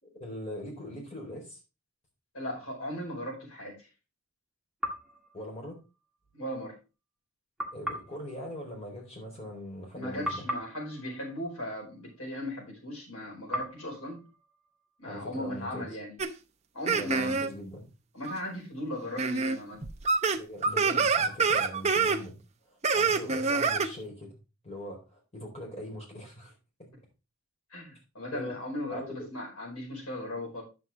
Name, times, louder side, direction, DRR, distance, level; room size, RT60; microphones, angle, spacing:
voice 1, 0.0-1.6 5.3-5.8 7.7-10.5 15.0-15.9 16.9-17.9 20.3-22.4 22.7-24.4 24.6-26.5 26.8-26.9 28.3-28.6 28.9-29.3, left 1 dB, 30° left, -1 dB, 4.2 m, -41 dB
voice 2, 2.3-3.9 6.3-6.8 9.9-14.2 15.0-16.2 16.7-17.4 18.1-19.8 27.7-30.6, left 1 dB, 80° left, -2 dB, 5.0 m, -37 dB
sound 1, 4.8-6.2 7.6-9.9 10.2-12.5 13.5-15.4, equal, 5° right, 1.6 m, -40 dB
sound 2, 16.2-16.3 16.9-17.5 18.2-18.3 19.2-19.6 19.8-22.2 22.8-23.9, right 5 dB, 30° right, 0.7 m, -26 dB
9.7 x 7.3 x 3.6 m, 0.29 s
head